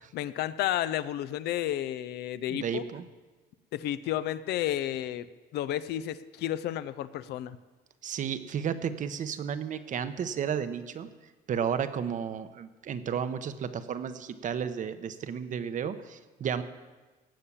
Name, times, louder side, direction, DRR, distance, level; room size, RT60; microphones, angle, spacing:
voice 1, 0.1-2.8 3.7-7.6, left 12 dB, 75° left, 15 dB, 0.6 m, -32 dB
voice 2, 2.5-3.0 8.0-11.1 11.5-16.6, right 8 dB, 50° right, 11 dB, 0.9 m, -33 dB
17.0 x 5.7 x 8.5 m, 1.3 s
cardioid pair, 110°, 17 cm